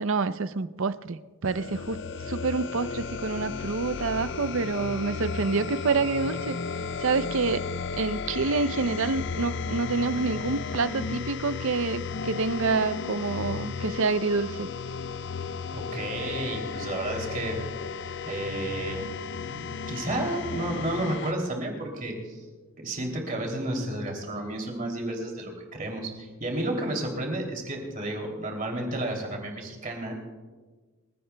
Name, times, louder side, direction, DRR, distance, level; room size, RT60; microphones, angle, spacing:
voice 1, 0.0-2.0 2.3-6.6 7.0-7.6 8.0-14.7, right 4 dB, 60° right, 13 dB, 0.6 m, -27 dB
sound 1, 1.4-21.3, left 5 dB, 55° left, 0.4 m, -34 dB
voice 2, 15.7-17.6 18.2-19.1 19.5-22.4 22.8-30.1, right 1 dB, 35° right, 1 dB, 2.9 m, -32 dB
28.5 x 16.5 x 2.3 m, 1.3 s
head